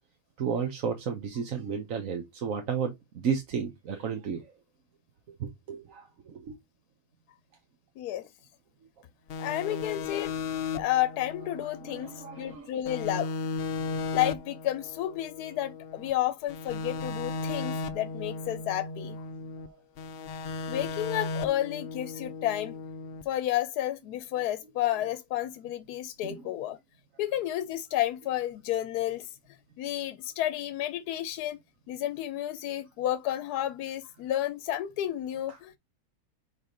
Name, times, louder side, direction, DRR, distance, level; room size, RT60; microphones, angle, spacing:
voice 1, 0.4-4.4 5.4-6.5 9.7-9.8 11.9-12.8 19.6-19.7 26.2-26.4 35.5-35.6, right 6 dB, 60° right, 1.4 m, -33 dB
sound 1, 9.3-12.6 12.9-16.1 16.5-19.7 20.0-23.2, left 4 dB, 55° left, 0.6 m, -36 dB
voice 2, 9.4-10.3 10.7-13.3 14.1-19.2 20.7-22.8 23.3-26.8 27.2-29.3 29.8-31.6 31.9-35.8, left 13 dB, 85° left, 1.1 m, -31 dB
4.7 x 4.3 x 5.2 m
omnidirectional pair, 1.6 m